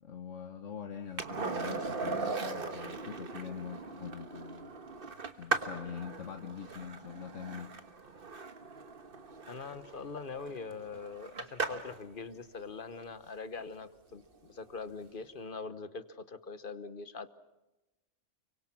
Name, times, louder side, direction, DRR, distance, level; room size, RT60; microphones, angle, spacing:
voice 1, 0.0-4.8 5.4-7.7, left 8 dB, 85° left, 5 dB, 1.4 m, -43 dB
Skateboard, 1.2-12.0 14.6-14.7, right 4 dB, 50° right, 1.4 m, -39 dB
voice 2, 9.5-17.3, left 4 dB, 50° left, 12 dB, 1.1 m, -43 dB
30.0 x 24.0 x 6.0 m, 1.0 s
omnidirectional pair, 1.2 m